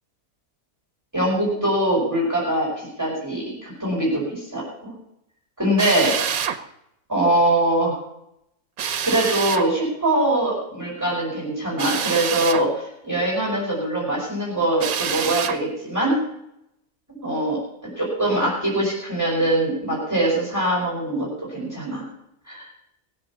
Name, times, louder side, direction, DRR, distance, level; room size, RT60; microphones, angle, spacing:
voice 1, 1.1-4.9 5.6-6.1 7.1-8.0 9.0-16.2 17.1-17.6 18.0-22.1 22.5-22.7, right 1 dB, 10° right, -5 dB, 5.4 m, -23 dB
Drill, 5.8-6.6 8.8-9.7 11.8-12.7 14.8-15.6, right 8 dB, 80° right, 1.4 m, -26 dB
20.0 x 7.9 x 7.1 m, 0.81 s
omnidirectional pair, 1.5 m